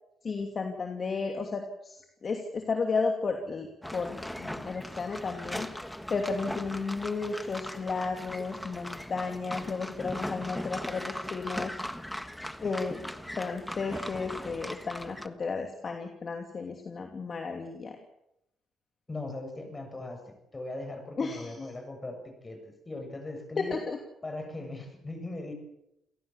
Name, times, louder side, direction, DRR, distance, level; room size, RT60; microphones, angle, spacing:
voice 1, 0.2-11.8 12.6-18.0 21.2-21.7 23.6-24.0, left 4 dB, 40° left, 4 dB, 2.7 m, -33 dB
sound 1, 3.8-15.3, left 1 dB, 5° left, 1.5 m, -39 dB
voice 2, 19.1-23.8 24.2-25.5, left 2 dB, 25° left, 6 dB, 7.2 m, -39 dB
28.5 x 17.5 x 7.2 m, 0.84 s
cardioid pair, 90°, 0 cm